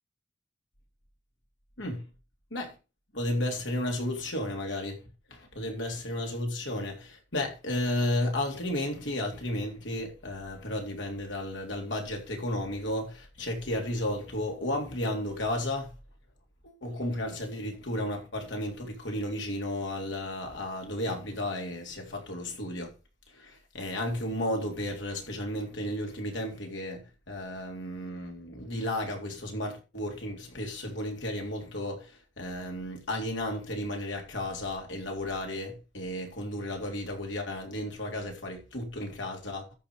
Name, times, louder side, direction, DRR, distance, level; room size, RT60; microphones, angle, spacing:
voice 1, 3.1-5.0 5.3-15.9 16.6-22.9 23.3-39.6, left 1 dB, 85° left, 3.7 m, -33 dB
13.5 x 5.7 x 5.0 m
head